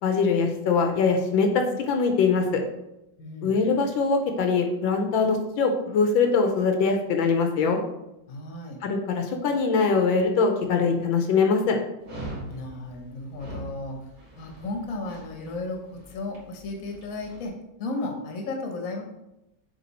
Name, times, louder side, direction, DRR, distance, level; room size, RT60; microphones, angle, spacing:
voice 1, 0.0-2.6 3.4-7.8 8.8-11.8, left 4 dB, 80° left, 4 dB, 1.5 m, -22 dB
voice 2, 3.2-3.6 8.3-8.8 12.5-14.1 14.4-19.0, left 2 dB, 50° left, 2 dB, 1.3 m, -34 dB
Dog, 12.0-17.4, right 1 dB, 50° right, 2.7 m, -42 dB
7.4 x 3.3 x 4.2 m, 0.89 s
omnidirectional pair, 2.1 m